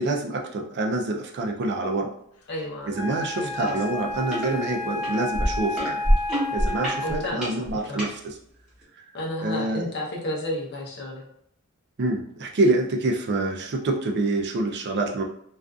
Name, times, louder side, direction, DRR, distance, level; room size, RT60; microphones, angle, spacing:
voice 1, 0.0-2.1 2.9-6.0 6.5-8.4 9.4-9.9 12.0-15.2, right 2 dB, 50° right, 2 dB, 0.4 m, -26 dB
voice 2, 2.5-2.9 3.4-3.8 7.0-8.0 9.1-11.2, left 1 dB, 50° left, -1 dB, 0.7 m, -32 dB
Wind instrument woodwind instrument, 2.9-7.5, left 2 dB, 85° left, 0.4 m, -31 dB
sound 1, 3.6-3.8 4.1-4.5 5.0-8.1 8.8-8.9, equal, 5° right, 0.9 m, -25 dB
2.5 x 2.4 x 2.3 m, 0.70 s
head